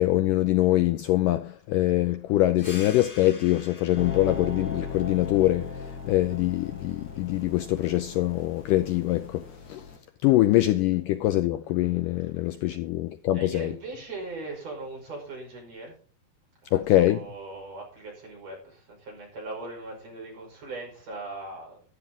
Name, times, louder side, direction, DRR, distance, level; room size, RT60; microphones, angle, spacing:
voice 1, 0.0-5.8 6.0-9.4 9.7-9.8 10.2-13.7 16.7-17.2, left 15 dB, 80° left, 2.0 m, -23 dB
sound 1, 2.6-7.7, left 3 dB, 65° left, 0.5 m, -48 dB
sound 2, 4.0-10.0, left 5 dB, 35° left, 2.3 m, -38 dB
voice 2, 13.3-16.0 16.6-21.8, right 2 dB, 45° right, 6.7 m, -39 dB
14.0 x 11.0 x 3.7 m
omnidirectional pair, 4.3 m